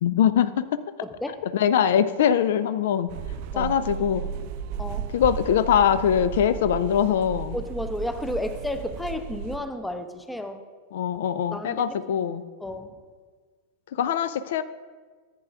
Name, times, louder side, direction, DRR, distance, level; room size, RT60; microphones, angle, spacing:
voice 1, 0.0-0.8 1.5-3.1 3.6-4.3 5.1-7.6 10.9-12.4 13.9-14.6, left 9 dB, 55° left, 14 dB, 0.3 m, -22 dB
voice 2, 1.0-1.4 3.5-3.7 4.8-5.1 7.5-10.6 11.5-11.9 12.6-13.0, left 1 dB, 5° left, 10 dB, 0.7 m, -32 dB
sound 1, 3.1-9.6, right 7 dB, 45° right, 0.4 m, -34 dB
14.5 x 9.0 x 2.4 m, 1.5 s
figure-of-eight pair, 90°, 0 cm